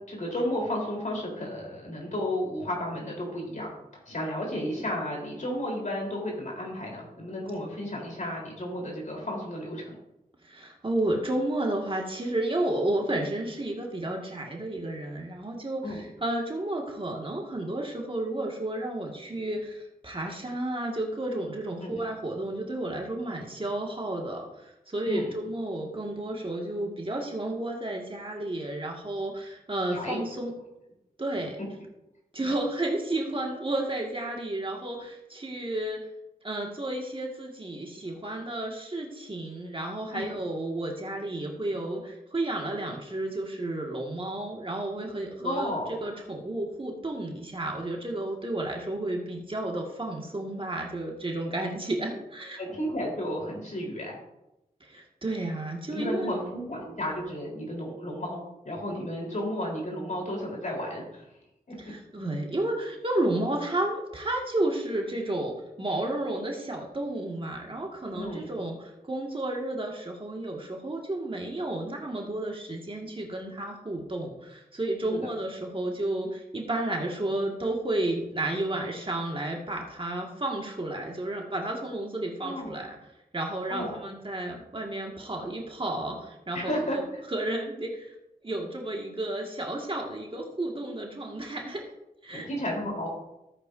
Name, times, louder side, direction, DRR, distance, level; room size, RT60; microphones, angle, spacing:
voice 1, 0.0-3.7 4.1-10.0 15.8-16.0 21.8-22.0 25.1-25.3 29.9-30.2 40.1-40.4 45.4-45.9 52.6-54.2 55.9-61.2 68.1-68.5 75.1-75.3 82.4-82.8 83.7-84.0 86.5-87.0 92.3-93.1, left 1 dB, 55° left, -2 dB, 3.8 m, -33 dB
voice 2, 10.4-30.5 31.2-31.6 32.3-36.1 36.4-52.6 54.8-56.3 61.8-83.0 83.3-88.2 88.4-91.9 92.2-92.5, right 1 dB, 35° right, 0 dB, 1.9 m, -32 dB
14.0 x 8.5 x 2.7 m, 0.90 s
cardioid pair, 65°, 16 cm